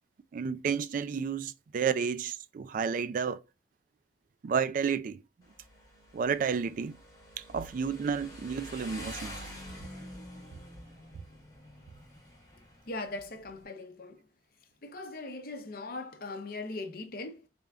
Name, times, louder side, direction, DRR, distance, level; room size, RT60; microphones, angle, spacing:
voice 1, 0.3-3.4 4.4-5.2 6.1-7.0 7.4-9.3, right 6 dB, 50° right, 0.3 m, -31 dB
Motorcycle, 5.4-13.6, left 1 dB, 20° left, 1.2 m, -47 dB
voice 2, 12.8-14.3 14.8-17.5, left 2 dB, 55° left, 0.7 m, -40 dB
3.8 x 3.4 x 2.3 m
head